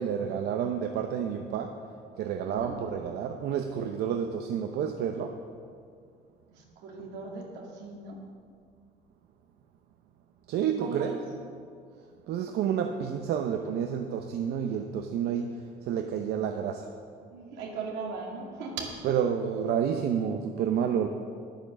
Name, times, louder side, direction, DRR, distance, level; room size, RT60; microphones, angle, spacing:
voice 1, 0.0-1.9 2.2-5.5 10.5-11.2 12.3-16.9 19.0-21.1, right 8 dB, 75° right, 5 dB, 0.7 m, -30 dB
voice 2, 2.4-2.8 6.5-8.2 10.6-11.2 17.3-18.9, right 4 dB, 90° right, -1 dB, 2.3 m, -38 dB
10.0 x 8.9 x 6.3 m, 2.2 s
cardioid pair, 110°, 17 cm